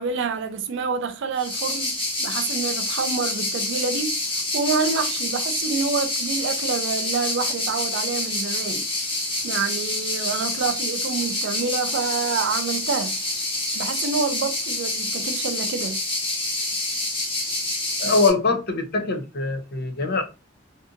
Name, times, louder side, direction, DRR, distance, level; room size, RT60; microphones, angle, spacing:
voice 1, 0.0-4.2 4.5-8.9 9.4-13.2 13.7-16.0, right 5 dB, 60° right, 0.4 m, -27 dB
sound 1, 1.4-18.3, left 2 dB, 25° left, 1.0 m, -27 dB
voice 2, 18.0-20.2, left 3 dB, 50° left, 0.6 m, -23 dB
2.6 x 2.6 x 2.5 m
head